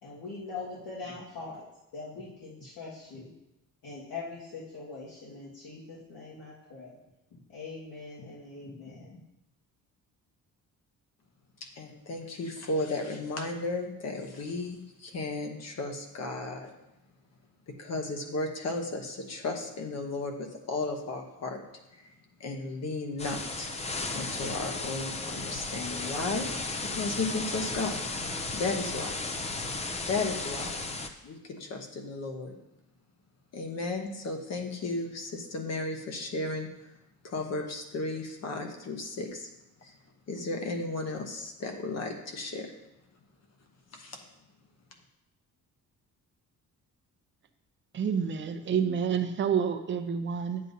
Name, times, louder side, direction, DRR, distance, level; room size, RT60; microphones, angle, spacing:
voice 1, 0.0-1.6 1.9-3.3 3.8-7.0 7.3-9.2, left 3 dB, 75° left, -7 dB, 1.8 m, -42 dB
voice 2, 11.6-16.7 17.7-21.6 21.9-22.1 22.4-23.7 24.1-28.0 28.5-29.2 30.1-30.8 31.2-32.6 33.5-36.9 37.2-39.5 39.8-40.0 40.3-42.8 43.9-44.2, left 3 dB, 50° left, 3 dB, 1.0 m, -34 dB
sound 1, 23.2-31.1, left 3 dB, 20° left, 0.4 m, -35 dB
voice 3, 47.9-50.6, right 7 dB, 35° right, 7 dB, 0.5 m, -28 dB
9.1 x 7.6 x 2.7 m, 0.92 s
cardioid pair, 175°, 35 cm